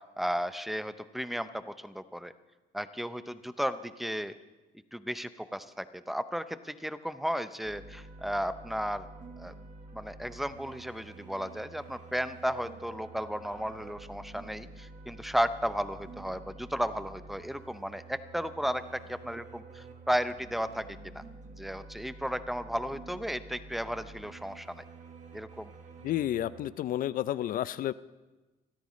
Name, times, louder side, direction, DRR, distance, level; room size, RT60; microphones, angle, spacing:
voice 1, 0.2-2.3 2.7-4.3 4.9-9.1 9.4-9.5 9.9-21.2 21.6-24.8 25.3-25.7, equal, ahead, 12 dB, 0.6 m, -34 dB
sound 1, 7.6-26.7, right 3 dB, 45° right, 1.5 m, -49 dB
voice 2, 26.0-27.9, left 12 dB, 55° left, 17 dB, 0.5 m, -31 dB
24.5 x 13.5 x 3.2 m, 1.2 s
cardioid pair, 110°, 17 cm